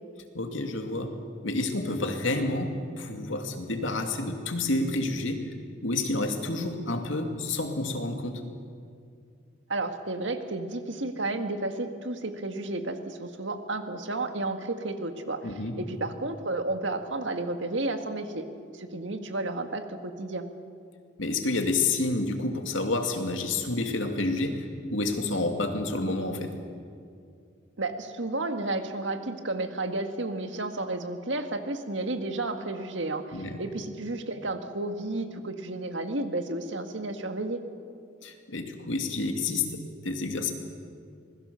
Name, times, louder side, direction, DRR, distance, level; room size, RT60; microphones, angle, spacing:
voice 1, 0.3-1.2 1.4-5.5 5.8-8.5 15.4-15.8 21.2-26.6 33.3-33.6 38.2-40.5, left 2 dB, 85° left, 5 dB, 2.5 m, -29 dB
voice 2, 9.7-15.5 15.8-18.5 18.7-20.5 27.8-37.6, right 2 dB, 75° right, 7 dB, 1.8 m, -32 dB
26.5 x 20.5 x 7.0 m, 2.3 s
head